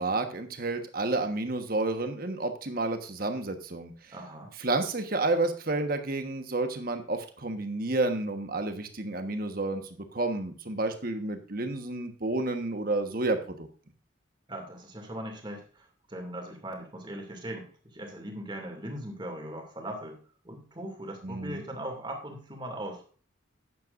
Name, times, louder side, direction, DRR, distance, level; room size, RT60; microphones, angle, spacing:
voice 1, 0.0-3.9 4.6-13.7 21.2-21.6, right 2 dB, 45° right, 7 dB, 1.3 m, -30 dB
voice 2, 4.1-4.5 14.5-20.2 20.4-23.0, right 1 dB, 25° right, 2 dB, 2.5 m, -39 dB
12.5 x 9.2 x 2.6 m, 0.40 s
head